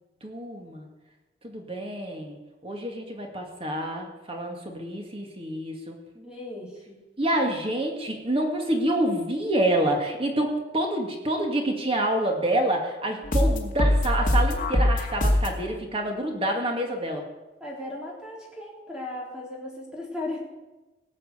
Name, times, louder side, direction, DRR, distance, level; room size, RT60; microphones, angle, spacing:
voice 1, 0.2-0.9 1.4-6.0 7.2-17.2, right 1 dB, 30° right, 2 dB, 2.1 m, -27 dB
voice 2, 6.1-7.0 17.6-20.4, left 2 dB, 5° right, -3 dB, 3.6 m, -36 dB
sound 1, 13.2-15.6, left 1 dB, 45° left, 2.2 m, -22 dB
18.5 x 6.5 x 8.3 m, 1.1 s
head